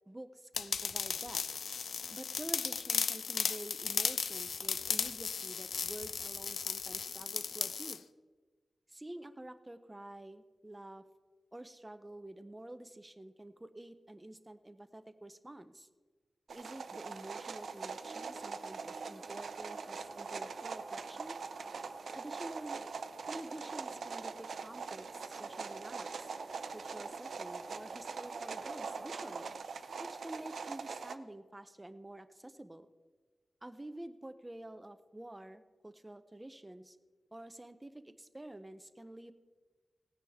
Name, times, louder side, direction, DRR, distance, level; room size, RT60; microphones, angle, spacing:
voice 1, 0.1-1.4 2.1-8.0 8.9-11.0 11.5-15.9 16.5-21.4 22.1-22.8 23.3-26.3 26.7-29.6 30.0-32.9 33.6-37.0 37.3-39.3, right 1 dB, 15° right, 10 dB, 0.6 m, -49 dB
sound 1, 0.5-8.0, left 6 dB, 85° left, 0.4 m, -36 dB
sound 2, 16.5-31.2, right 5 dB, 75° right, 0.6 m, -43 dB
sound 3, 18.0-29.5, right 3 dB, 40° right, 1.1 m, -52 dB
18.0 x 9.5 x 3.5 m, 1.3 s
wide cardioid pair, 170°, 0 cm